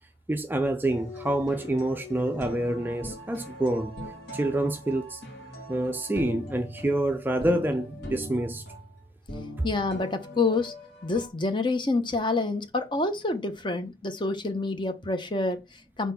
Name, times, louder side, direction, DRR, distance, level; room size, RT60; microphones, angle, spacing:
voice 1, 0.3-4.0 4.3-5.2 5.7-8.6, right 1 dB, 10° right, 0.4 m, -27 dB
sound 1, 0.9-11.3, equal, 60° left, 2.7 m, -41 dB
voice 2, 9.6-10.7 11.0-16.1, left 3 dB, 25° left, 0.8 m, -27 dB
4.2 x 4.1 x 5.6 m
head